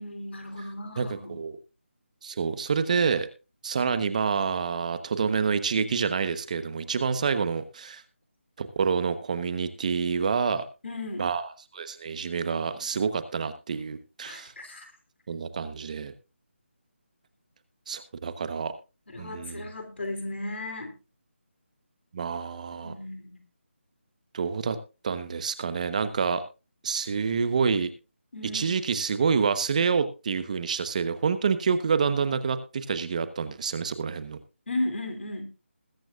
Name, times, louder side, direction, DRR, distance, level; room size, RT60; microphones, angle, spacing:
voice 1, 0.0-1.3 10.8-11.3 14.3-14.9 19.1-20.9 22.8-23.4 28.3-28.7 34.7-35.4, left 1 dB, 65° left, 6 dB, 3.5 m, -35 dB
voice 2, 1.0-1.6 2.2-3.3 3.6-8.0 8.6-10.6 11.2-11.4 11.7-14.5 15.3-16.1 17.9-18.7 19.2-19.6 22.1-22.9 24.3-24.8 25.0-26.4 26.8-27.9 28.5-34.4, right 5 dB, 35° right, 11 dB, 1.1 m, -27 dB
21.0 x 9.2 x 2.5 m, 0.30 s
figure-of-eight pair, 165°, 7 cm